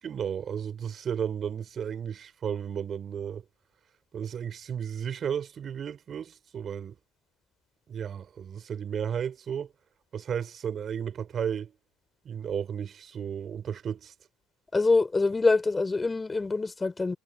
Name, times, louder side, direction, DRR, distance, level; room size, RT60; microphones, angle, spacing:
voice 1, 0.0-3.4 4.1-7.0 7.9-9.7 10.1-11.8 12.2-14.1, right 8 dB, 40° right, 4.6 m, -33 dB
voice 2, 14.7-17.2, left 3 dB, 20° left, 4.7 m, -25 dB
hypercardioid pair, 75°, 0 cm